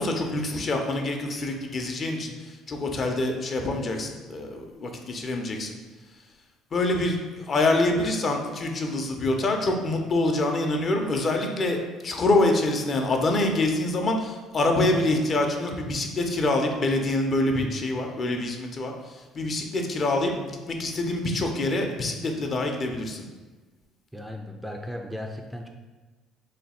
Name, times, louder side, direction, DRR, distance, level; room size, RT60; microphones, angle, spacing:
voice 1, 0.0-5.7 6.7-23.3, left 2 dB, 40° left, 3 dB, 0.5 m, -26 dB
voice 2, 24.1-25.7, left 1 dB, 5° right, 2 dB, 0.3 m, -36 dB
3.2 x 2.3 x 4.2 m, 1.3 s
cardioid pair, 95°, 0 cm